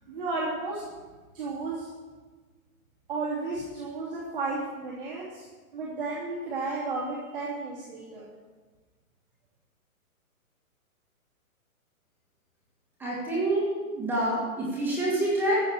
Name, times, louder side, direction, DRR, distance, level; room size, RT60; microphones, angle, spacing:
voice 1, 0.1-0.8 1.3-1.9 3.1-5.4 5.7-8.3, right 3 dB, 35° right, -7 dB, 3.0 m, -33 dB
voice 2, 13.0-13.7 13.9-15.6, right 1 dB, 5° right, -6 dB, 1.9 m, -27 dB
14.5 x 6.5 x 7.5 m, 1.3 s
hypercardioid pair, 170°, 44 cm